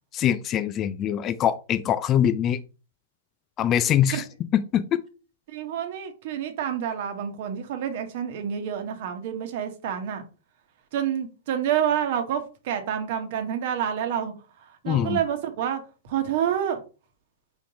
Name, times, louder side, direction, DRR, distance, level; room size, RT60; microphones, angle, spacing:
voice 1, 0.1-2.6 3.6-4.2 4.5-5.0 14.9-15.2, left 10 dB, 30° left, 12 dB, 0.3 m, -23 dB
voice 2, 5.5-10.2 10.9-16.8, right 9 dB, 55° right, 6 dB, 1.1 m, -28 dB
4.5 x 3.9 x 2.9 m, 0.34 s
hypercardioid pair, 110°, 0 cm